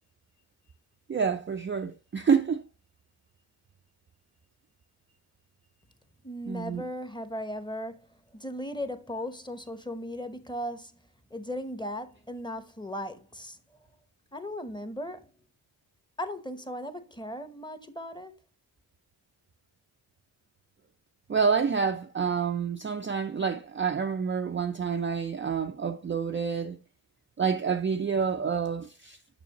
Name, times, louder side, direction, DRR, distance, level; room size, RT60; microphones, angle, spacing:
voice 1, 1.1-2.6 6.5-6.8 21.3-26.8 27.4-29.2, right 6 dB, 25° right, 0.5 m, -28 dB
voice 2, 6.2-8.0 8.3-11.0 11.3-13.6 14.3-15.3 16.2-18.3, equal, 10° left, 1.0 m, -37 dB
6.9 x 5.6 x 2.9 m
supercardioid pair, 50°, 48 cm